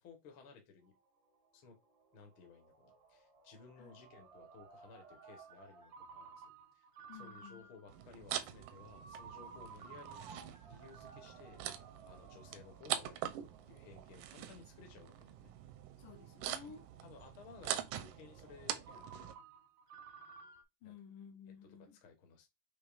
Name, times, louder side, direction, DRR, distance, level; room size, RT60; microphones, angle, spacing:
voice 1, 0.0-0.9 1.5-1.8 2.1-6.9 7.2-11.7 12.1-13.3 13.7-15.5 17.0-19.5 20.8-20.9 22.0-22.5, left 5 dB, 55° left, 1.6 m, -58 dB
Ringtone, 0.9-20.6, right 5 dB, 70° right, 1.1 m, -57 dB
voice 2, 7.1-7.7 16.0-16.8 20.8-22.0, left 7 dB, 80° left, 2.3 m, -54 dB
sound 1, 7.9-19.3, right 11 dB, 85° right, 2.1 m, -44 dB
6.9 x 3.1 x 2.5 m
omnidirectional pair, 3.6 m